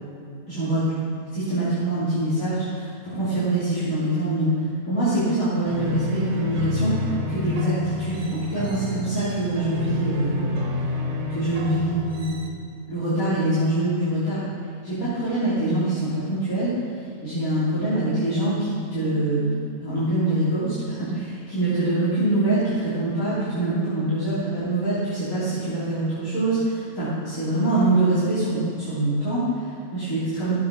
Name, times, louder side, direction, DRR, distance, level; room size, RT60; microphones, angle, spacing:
voice 1, 0.5-0.9 1.3-4.6 4.9-10.6 11.3-12.4 12.9-14.4 14.8-30.5, right 1 dB, 75° left, -13 dB, 4.0 m, -24 dB
sound 1, 5.7-12.5, left 1 dB, 55° right, 1.7 m, -29 dB
13.5 x 8.6 x 6.3 m, 2.5 s
omnidirectional pair, 1.5 m